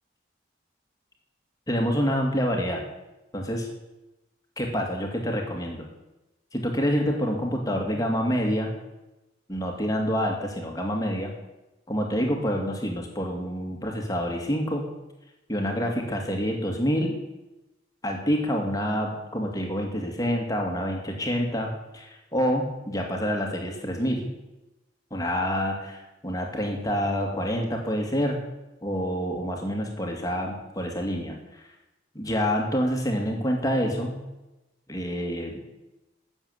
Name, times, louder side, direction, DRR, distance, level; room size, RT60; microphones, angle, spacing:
voice 1, 1.7-2.8 3.3-3.7 4.6-5.9 6.5-8.7 9.5-11.3 11.9-14.9 15.5-17.2 18.0-21.7 21.9-24.3 25.1-28.4 28.8-31.7 32.1-34.2 34.9-35.6, equal, 20° left, 1 dB, 2.3 m, -27 dB
13.5 x 7.4 x 8.7 m, 0.99 s
head